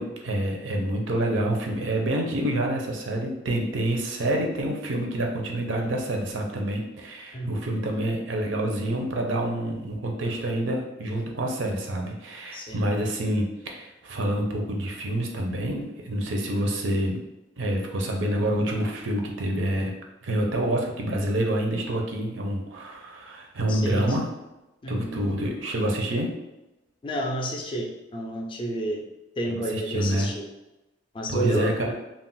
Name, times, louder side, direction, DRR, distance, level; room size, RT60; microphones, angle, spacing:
voice 1, 0.0-17.2 17.6-19.9 20.2-24.3 24.9-26.3 29.5-30.3 31.3-31.9, right 1 dB, 80° right, 1 dB, 0.5 m, -27 dB
voice 2, 7.3-7.7 12.5-12.8 23.7-24.2 24.8-25.2 27.0-29.0 29.4-30.4 31.1-31.9, right 1 dB, 25° left, 1 dB, 0.4 m, -30 dB
2.3 x 2.0 x 3.8 m, 0.99 s
head